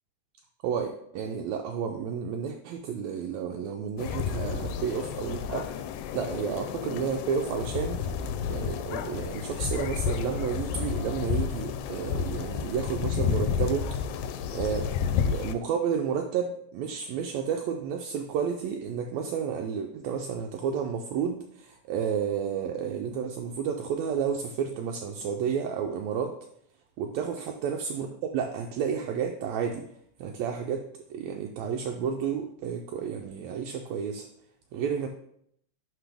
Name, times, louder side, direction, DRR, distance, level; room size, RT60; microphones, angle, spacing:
voice 1, 1.1-5.7 6.1-13.9 14.5-14.9 15.2-26.4 27.0-28.1 28.3-29.9 30.2-34.3 34.7-35.1, right 7 dB, 80° right, 3 dB, 1.7 m, -31 dB
sound 1, 4.0-15.5, left 7 dB, 90° left, 2.0 m, -31 dB
11.0 x 4.0 x 3.4 m, 0.72 s
omnidirectional pair, 3.4 m